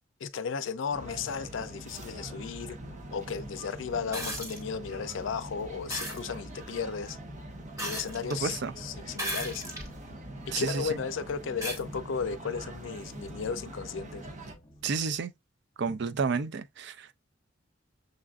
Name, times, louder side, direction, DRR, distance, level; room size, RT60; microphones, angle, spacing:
voice 1, 0.2-2.8 3.1-7.2 7.8-9.8 10.5-14.3, left 6 dB, 70° left, 0.4 m, -35 dB
sound 1, 0.9-14.6, right 1 dB, 40° right, 0.8 m, -44 dB
sound 2, 2.8-15.1, equal, 20° left, 0.9 m, -54 dB
sound 3, 4.1-4.6 5.9-6.2 7.8-8.4 9.1-9.9 10.5-10.6 11.6-11.8 13.3-13.4, equal, 20° right, 1.3 m, -35 dB
voice 2, 8.3-8.7 10.5-10.8 14.8-15.3 15.8-17.1, right 5 dB, 60° right, 0.4 m, -31 dB
6.5 x 2.4 x 2.3 m
head